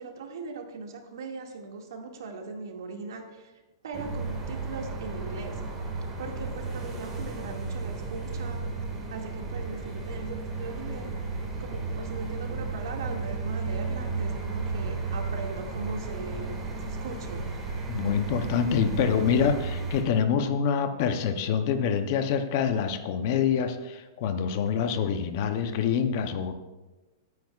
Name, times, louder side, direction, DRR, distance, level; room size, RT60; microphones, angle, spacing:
voice 1, 0.0-3.5 3.8-5.6 6.2-8.6 9.1-11.1 11.6-17.5, right 4 dB, 70° right, 2 dB, 2.0 m, -39 dB
sound 1, 3.9-20.0, right 3 dB, 10° right, 1.6 m, -33 dB
voice 2, 17.9-26.5, left 7 dB, 35° left, 9 dB, 0.6 m, -26 dB
18.5 x 9.3 x 2.4 m, 1.1 s
supercardioid pair, 180°, 2 cm